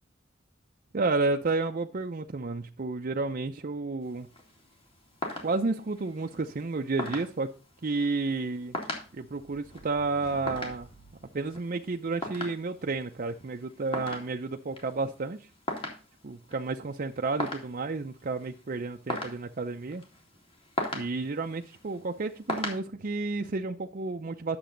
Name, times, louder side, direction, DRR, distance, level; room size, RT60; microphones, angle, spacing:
voice 1, 0.9-4.3 5.4-7.5 7.8-8.7 9.1-10.9 11.3-15.4 16.2-20.0 20.9-24.6, right 3 dB, 45° right, 0.6 m, -31 dB
sound 1, 4.0-22.8, left 1 dB, 30° left, 2.5 m, -40 dB
sound 2, 8.9-12.3, right 1 dB, 55° left, 3.0 m, -53 dB
10.5 x 6.9 x 3.9 m
head